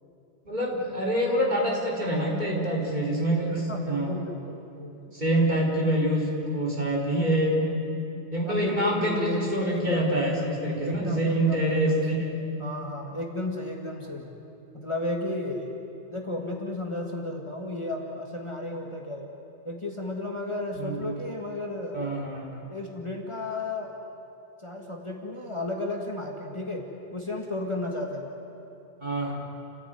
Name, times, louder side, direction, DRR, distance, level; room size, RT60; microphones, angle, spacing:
voice 1, 0.5-4.2 5.1-7.6 8.3-12.3 20.8-21.1 21.9-22.4 29.0-29.4, right 1 dB, 40° right, -3 dB, 4.5 m, -26 dB
voice 2, 3.7-5.2 8.5-10.5 10.8-12.0 12.6-14.2 14.7-15.8 16.1-19.3 19.6-22.2 22.7-23.9 24.6-28.3, left 2 dB, 25° left, 0 dB, 2.1 m, -33 dB
29.5 x 16.0 x 9.5 m, 2.8 s
omnidirectional pair, 1.2 m